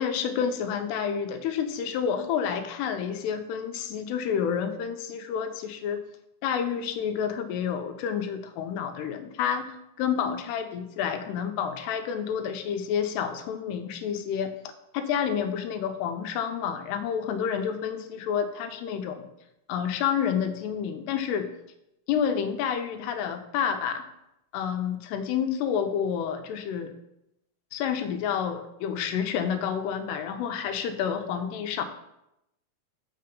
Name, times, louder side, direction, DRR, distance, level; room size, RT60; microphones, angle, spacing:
voice 1, 0.0-6.0 6.4-9.7 10.0-14.5 14.9-19.3 19.7-21.5 22.1-24.0 24.5-26.9 27.7-31.9, left 8 dB, 85° left, 8 dB, 2.7 m, -29 dB
6.7 x 5.9 x 5.2 m, 0.85 s
omnidirectional pair, 4.7 m